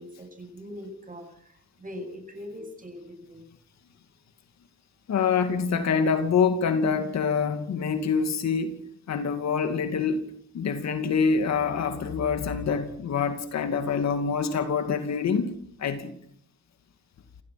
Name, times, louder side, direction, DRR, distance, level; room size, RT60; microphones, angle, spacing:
voice 1, 0.0-3.4, left 1 dB, 25° right, 7.9 m, -41 dB
voice 2, 5.1-8.8 9.1-10.2 10.5-16.1, left 5 dB, 60° left, 2.5 m, -26 dB
29.0 x 15.5 x 6.0 m
cardioid pair, 90°, 30 cm